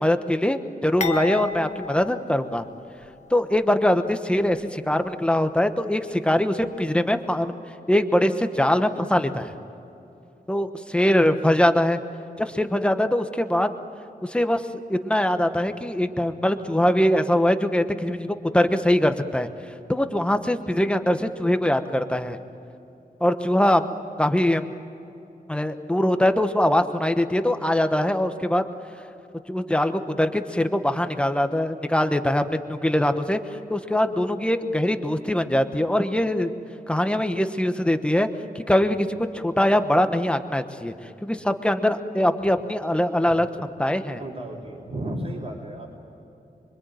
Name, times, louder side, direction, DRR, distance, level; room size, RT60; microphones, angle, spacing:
voice 1, 0.0-2.7 3.3-7.6 7.9-9.5 10.5-12.0 12.4-13.7 14.2-14.6 14.9-19.5 19.9-22.4 23.2-23.9 24.2-24.7 25.5-28.6 29.5-33.4 33.7-36.5 36.9-38.3 38.5-39.1 39.3-40.9 41.2-43.5 43.8-44.2, left 1 dB, 5° left, 8 dB, 1.2 m, -22 dB
sound 1, 1.0-3.2 3.5-3.7 4.5-4.7, left 4 dB, 45° left, 1.5 m, -33 dB
voice 2, 44.2-46.0, right 1 dB, 45° right, -5 dB, 4.0 m, -34 dB
26.0 x 24.0 x 9.2 m, 2.9 s
wide cardioid pair, 155°, 15 cm